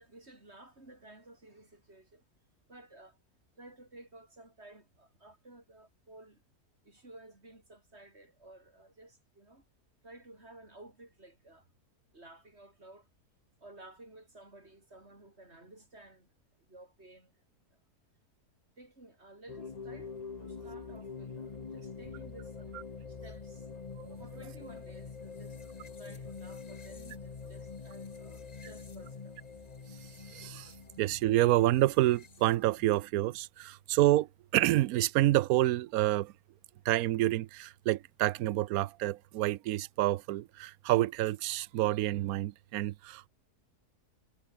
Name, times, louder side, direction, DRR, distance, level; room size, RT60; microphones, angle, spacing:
voice 1, 0.0-2.2 2.7-3.2 3.6-6.4 6.8-9.7 10.0-11.7 12.1-13.1 13.6-16.3 16.6-17.4 17.7-17.8 18.8-20.1 20.4-22.8 23.1-23.7 24.2-29.4, right 2 dB, 40° right, 5.6 m, -54 dB
sound 1, 19.5-33.0, left 5 dB, 30° left, 0.9 m, -45 dB
voice 2, 30.3-30.7 31.0-36.3 36.8-43.3, right 15 dB, 75° right, 1.0 m, -28 dB
omnidirectional pair, 1.7 m